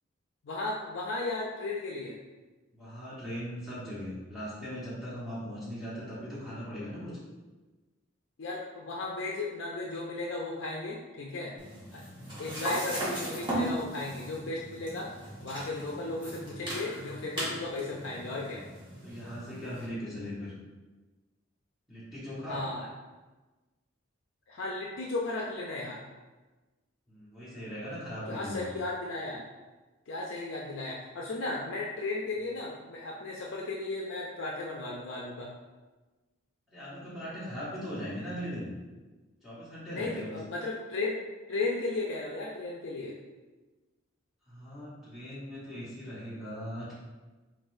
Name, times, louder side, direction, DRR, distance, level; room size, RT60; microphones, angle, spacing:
voice 1, 0.4-2.2 8.4-11.5 11.9-15.1 15.4-18.6 22.5-22.9 24.5-26.1 28.3-29.4 30.1-35.5 39.9-41.2 41.5-43.1, left 2 dB, 65° left, -2 dB, 0.5 m, -35 dB
voice 2, 2.7-7.2 11.7-11.9 12.2-12.4 19.0-20.5 21.9-22.6 27.1-28.7 36.7-38.7 39.4-40.4 44.5-46.9, equal, ahead, -11 dB, 1.1 m, -39 dB
sound 1, 11.6-19.9, right 1 dB, 25° right, 1.4 m, -38 dB
4.3 x 4.0 x 2.6 m, 1.2 s
head